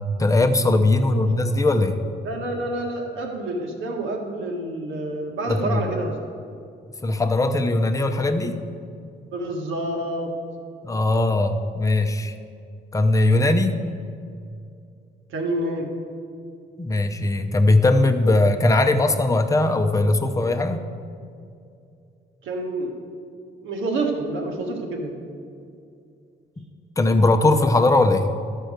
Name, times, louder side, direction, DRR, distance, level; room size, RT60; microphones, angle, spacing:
voice 1, 0.0-2.0 5.5-5.8 7.0-8.6 10.8-12.3 12.9-13.8 16.8-20.8 26.6-26.7 27.0-28.3, left 2 dB, 15° left, 6 dB, 0.6 m, -20 dB
voice 2, 2.2-6.1 9.3-10.3 15.3-15.9 22.4-23.0 23.6-25.2, right 2 dB, 80° right, 1 dB, 1.6 m, -28 dB
12.0 x 4.6 x 6.5 m, 2.4 s
cardioid pair, 90°, 20 cm